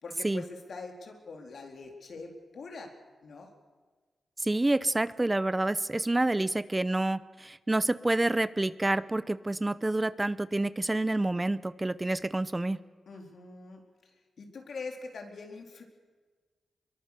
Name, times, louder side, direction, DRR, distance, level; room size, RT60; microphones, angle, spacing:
voice 1, 0.0-2.9 3.2-3.5 13.1-13.8 14.4-15.8, left 3 dB, 70° left, 3 dB, 3.8 m, -43 dB
voice 2, 4.4-12.8, right 2 dB, 20° right, 16 dB, 0.7 m, -28 dB
24.0 x 22.5 x 6.7 m, 1.4 s
cardioid pair, 65°, 0 cm